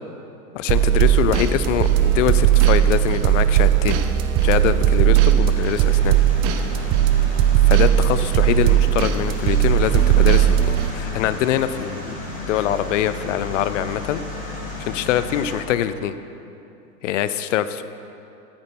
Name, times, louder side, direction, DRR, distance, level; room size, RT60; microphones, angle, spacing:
voice 1, 0.5-4.0 4.4-5.8 6.0-6.2 7.7-12.1 12.5-14.2 14.9-16.2 17.0-17.8, left 11 dB, 50° left, 13 dB, 0.6 m, -23 dB
sound 1, 0.7-10.9, right 11 dB, 30° right, 0.8 m, -17 dB
sound 2, 5.4-15.6, left 2 dB, 15° left, 2.9 m, -34 dB
14.0 x 8.6 x 4.5 m, 2.7 s
hypercardioid pair, 115°, 48 cm